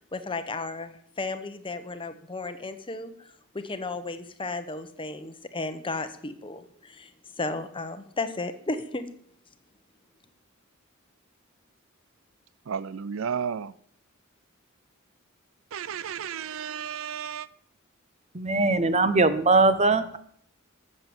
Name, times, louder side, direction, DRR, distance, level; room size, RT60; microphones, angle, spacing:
voice 1, 0.0-7.1 7.4-9.0, left 3 dB, 25° left, 1.0 m, -34 dB
voice 2, 12.7-13.7 15.7-17.5, right 7 dB, 65° right, 0.4 m, -33 dB
voice 3, 18.3-20.2, right 3 dB, 30° right, 0.9 m, -21 dB
13.5 x 7.8 x 7.1 m
head